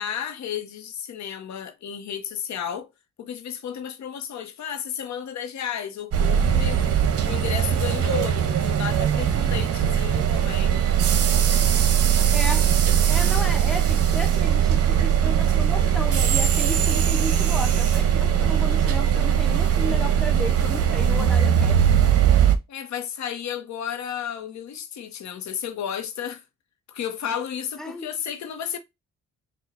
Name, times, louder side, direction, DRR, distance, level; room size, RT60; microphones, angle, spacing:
voice 1, 0.0-2.9 3.2-6.8 7.2-10.8 22.7-26.4 26.9-28.8, left 8 dB, 65° left, 1.0 m, -33 dB
sound 1, 6.1-22.6, right 9 dB, 50° right, 0.9 m, -20 dB
voice 2, 12.3-12.6 13.1-22.0 27.8-28.1, left 1 dB, ahead, 0.9 m, -34 dB
4.3 x 2.4 x 3.8 m
cardioid pair, 90°, 30 cm